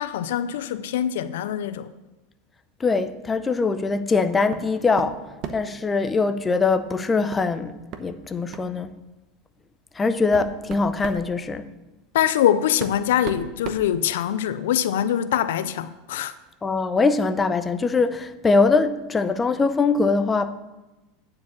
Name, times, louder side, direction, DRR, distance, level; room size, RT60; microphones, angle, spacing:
voice 1, 0.0-1.9 12.1-16.3, left 10 dB, 80° left, 0.4 m, -23 dB
voice 2, 2.8-5.2 5.5-8.9 10.0-11.7 16.6-20.5, left 4 dB, 20° left, 0.6 m, -22 dB
sound 1, 4.5-4.7 5.0-5.8 7.3-7.5 7.9-8.0 8.5-8.7 9.5-9.6 10.1-11.3 12.3-12.4 12.8-14.5, right 7 dB, 50° right, 0.9 m, -36 dB
9.5 x 4.8 x 7.4 m
supercardioid pair, 120°, 0 cm